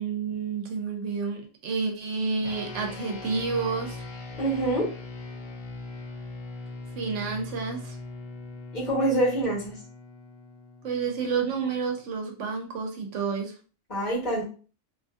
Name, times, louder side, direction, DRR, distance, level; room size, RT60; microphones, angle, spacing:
voice 1, 0.0-4.0 7.0-8.0 10.8-13.5, right 5 dB, 75° right, 2 dB, 0.9 m, -30 dB
sound 1, 2.4-12.1, left 3 dB, 90° left, 1.0 m, -41 dB
voice 2, 4.4-4.9 8.7-9.7 13.9-14.5, right 1 dB, 35° left, -6 dB, 1.2 m, -25 dB
2.6 x 2.5 x 2.4 m, 0.38 s
omnidirectional pair, 1.3 m